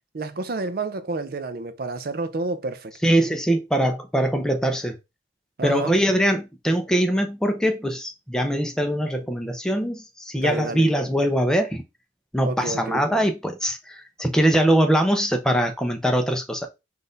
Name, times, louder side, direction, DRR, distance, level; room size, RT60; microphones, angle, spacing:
voice 1, 0.1-2.9 5.6-5.9 10.4-10.9 12.4-13.0, right 3 dB, 50° right, 0.5 m, -30 dB
voice 2, 3.0-5.0 5.6-11.8 12.3-16.7, right 1 dB, 5° left, 0.6 m, -22 dB
4.0 x 2.6 x 3.8 m
head